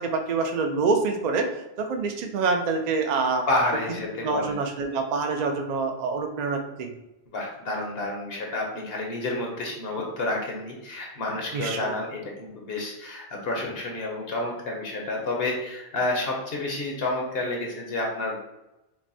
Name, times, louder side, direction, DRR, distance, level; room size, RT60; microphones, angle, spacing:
voice 1, 0.0-1.5 1.8-3.5 4.2-6.9 11.5-11.9, right 4 dB, 50° right, 5 dB, 0.5 m, -26 dB
voice 2, 3.5-4.6 7.3-18.4, left 2 dB, 65° left, 0 dB, 1.0 m, -29 dB
5.9 x 2.2 x 2.6 m, 0.96 s
omnidirectional pair, 1.1 m